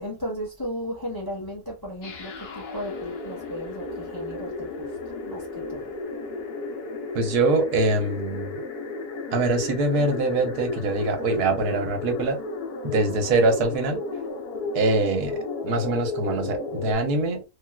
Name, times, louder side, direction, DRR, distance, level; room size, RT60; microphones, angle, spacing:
voice 1, 0.0-4.7 5.2-5.4 5.7-5.9, equal, 20° left, 0.8 m, -35 dB
sound 1, 2.0-16.9, left 3 dB, 80° left, 1.5 m, -33 dB
voice 2, 7.1-8.5 9.3-12.4 12.8-14.0 14.7-15.4 15.6-17.4, right 2 dB, 90° right, 1.3 m, -23 dB
3.5 x 2.3 x 2.2 m
omnidirectional pair, 1.6 m